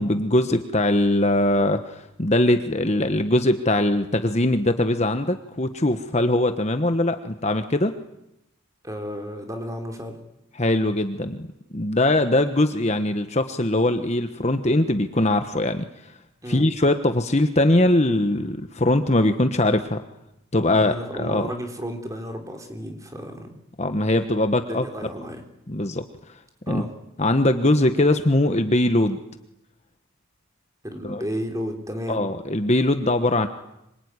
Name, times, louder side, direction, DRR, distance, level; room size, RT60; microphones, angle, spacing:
voice 1, 0.0-7.9 10.6-11.5 11.7-15.8 16.5-20.0 20.5-21.5 23.8-24.8 25.7-26.0 26.7-26.8 27.2-29.2 31.0-31.2 32.1-33.5, left 1 dB, 30° left, 8 dB, 1.2 m, -21 dB
voice 2, 8.8-10.2 16.4-16.7 20.6-23.6 24.7-25.4 26.7-26.9 30.8-32.2, equal, 15° right, 4 dB, 3.7 m, -33 dB
25.5 x 24.0 x 9.8 m, 0.86 s
head